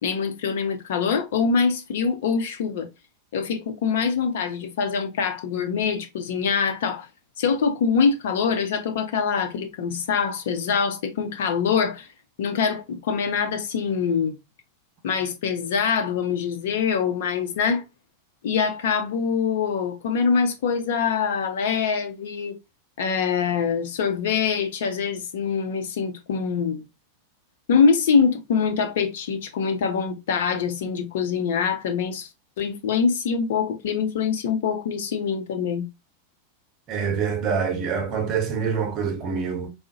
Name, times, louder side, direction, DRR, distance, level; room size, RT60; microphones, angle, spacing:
voice 1, 0.0-2.9 3.3-7.1 7.4-12.1 12.4-14.3 15.0-17.8 18.4-22.5 23.0-26.8 27.7-32.3 32.6-35.9, left 6 dB, 55° left, 0.6 m, -24 dB
voice 2, 36.9-39.7, right 6 dB, 35° right, 0.8 m, -25 dB
3.6 x 2.0 x 2.6 m
figure-of-eight pair, 90°, 0 cm